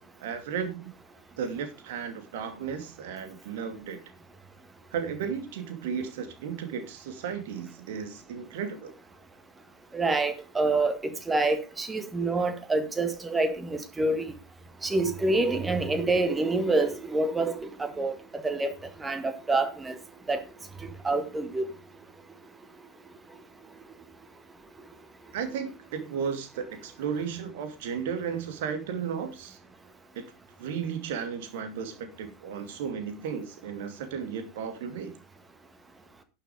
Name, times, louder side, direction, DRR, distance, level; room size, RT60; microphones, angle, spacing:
voice 1, 0.2-0.9 1.4-4.0 4.9-8.9 25.3-29.6 30.1-30.3 30.6-35.1, right 7 dB, 50° right, 2.5 m, -34 dB
voice 2, 9.9-11.0 11.3-14.2 14.8-18.7 19.0-20.0 20.3-20.4 21.0-21.6, right 2 dB, 10° right, 1.8 m, -27 dB
11.0 x 7.0 x 5.0 m
figure-of-eight pair, 90°, 0 cm